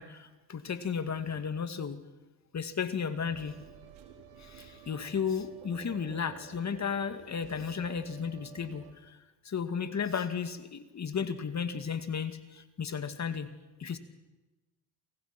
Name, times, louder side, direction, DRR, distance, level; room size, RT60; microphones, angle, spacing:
voice 1, 0.0-2.0 2.5-3.6 4.4-9.2 9.4-13.5 13.8-14.0, left 6 dB, 35° left, 9 dB, 2.3 m, -34 dB
sound 1, 3.2-8.9, right 7 dB, 80° right, 4.8 m, -51 dB
28.5 x 25.5 x 6.1 m, 1.1 s
supercardioid pair, 75°, 48 cm